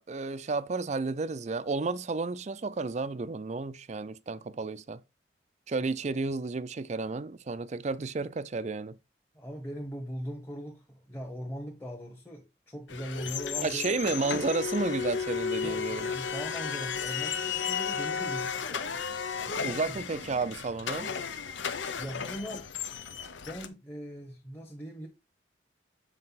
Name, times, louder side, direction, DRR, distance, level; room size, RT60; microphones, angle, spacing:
voice 1, 0.0-5.0 5.7-9.0 13.6-16.1 19.6-21.2, right 3 dB, 35° right, 0.4 m, -32 dB
voice 2, 9.3-13.9 15.5-19.0 19.4-20.0 21.9-25.1, equal, 10° left, 1.2 m, -41 dB
sound 1, 12.9-23.7, left 6 dB, 80° left, 0.8 m, -34 dB
7.6 x 4.9 x 4.0 m
head